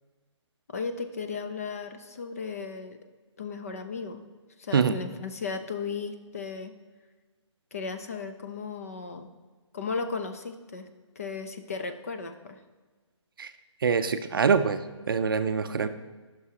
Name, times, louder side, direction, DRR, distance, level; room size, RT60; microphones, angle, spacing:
voice 1, 0.7-3.0 3.4-4.2 4.6-6.7 7.7-9.3 9.7-10.9 11.2-12.6, left 5 dB, 30° left, 7 dB, 0.5 m, -35 dB
voice 2, 13.8-15.9, right 6 dB, 45° right, 9 dB, 0.5 m, -25 dB
14.0 x 6.0 x 2.8 m, 1.4 s
hypercardioid pair, 170°, 16 cm